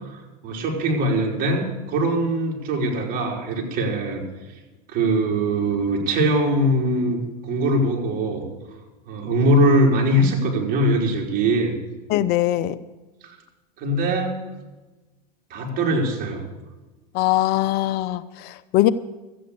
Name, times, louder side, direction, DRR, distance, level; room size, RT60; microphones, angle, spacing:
voice 1, 0.1-4.2 4.9-7.2 7.4-8.4 9.1-11.7 13.2-13.3 13.8-14.4 15.5-16.4, right 1 dB, 45° right, 0 dB, 4.3 m, -22 dB
voice 2, 12.1-12.8 17.1-18.9, left 14 dB, 50° left, 15 dB, 0.7 m, -21 dB
13.5 x 9.0 x 8.3 m, 1.2 s
hypercardioid pair, 105°, 20 cm